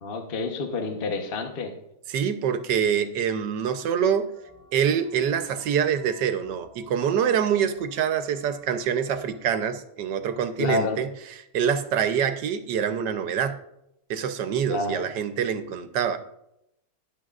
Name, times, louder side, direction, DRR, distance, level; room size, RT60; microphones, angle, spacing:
voice 1, 0.0-1.7 10.6-11.0 14.7-15.1, left 3 dB, 40° left, 4 dB, 1.1 m, -28 dB
voice 2, 2.1-4.3 4.7-11.1 11.5-13.6 14.1-16.2, right 8 dB, 85° right, 9 dB, 1.4 m, -25 dB
sound 1, 4.3-9.4, equal, 10° left, 4.3 m, -53 dB
18.5 x 10.5 x 2.4 m, 0.84 s
omnidirectional pair, 1.8 m